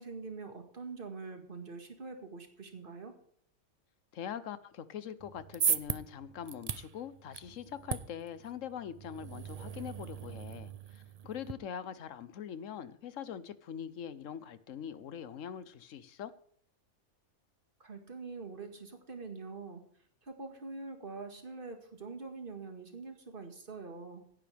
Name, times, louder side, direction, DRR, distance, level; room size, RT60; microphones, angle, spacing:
voice 1, 0.0-3.1 17.8-19.9 20.2-24.2, right 4 dB, 40° right, 2.0 m, -44 dB
voice 2, 4.1-16.3, left 8 dB, 65° left, 1.2 m, -43 dB
sound 1, 5.2-11.5, right 7 dB, 80° right, 0.3 m, -38 dB
16.5 x 9.9 x 3.5 m
omnidirectional pair, 1.5 m